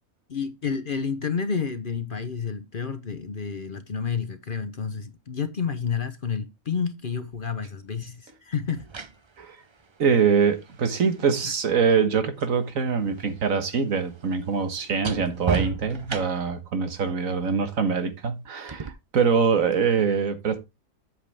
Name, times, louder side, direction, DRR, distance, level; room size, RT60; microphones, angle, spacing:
voice 1, 0.3-8.9, left 6 dB, 45° left, 0.9 m, -30 dB
sound 1, 7.3-7.5 8.6-12.6 12.9-16.6 18.7-18.9, right 4 dB, 35° right, 0.5 m, -35 dB
voice 2, 10.0-20.6, right 6 dB, 70° right, 1.7 m, -24 dB
8.6 x 7.7 x 3.4 m
omnidirectional pair, 1.5 m